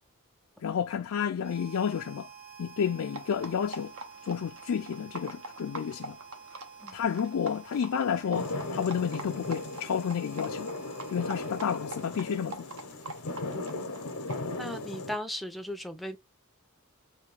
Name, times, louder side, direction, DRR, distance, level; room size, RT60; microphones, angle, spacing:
voice 1, 0.6-2.3 2.6-3.9 4.2-6.2 6.9-10.7 11.1-12.7, left 7 dB, 70° left, 0.4 m, -31 dB
Harmonica, 1.4-12.4, right 6 dB, 30° right, 1.2 m, -50 dB
sound 1, 3.1-14.4, right 2 dB, 70° right, 0.9 m, -45 dB
sound 2, 8.3-15.2, left 2 dB, 90° left, 0.7 m, -37 dB
voice 2, 14.6-16.2, equal, ahead, 0.5 m, -37 dB
3.4 x 2.3 x 3.3 m
head